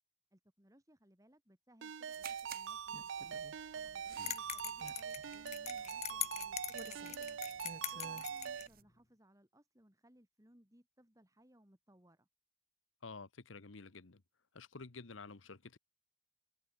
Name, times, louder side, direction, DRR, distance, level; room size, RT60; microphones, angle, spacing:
voice 1, 0.3-3.3 3.7-7.4 7.9-12.3, right 1 dB, 15° right, 3.4 m, -66 dB
Ringtone, 1.8-8.7, right 7 dB, 80° right, 0.5 m, -43 dB
sound 1, 2.1-8.8, right 5 dB, 50° right, 3.4 m, -54 dB
sound 2, 4.3-8.7, left 12 dB, 35° left, 1.4 m, -42 dB
voice 2, 13.0-14.2 14.5-15.8, left 4 dB, 90° left, 1.2 m, -51 dB
head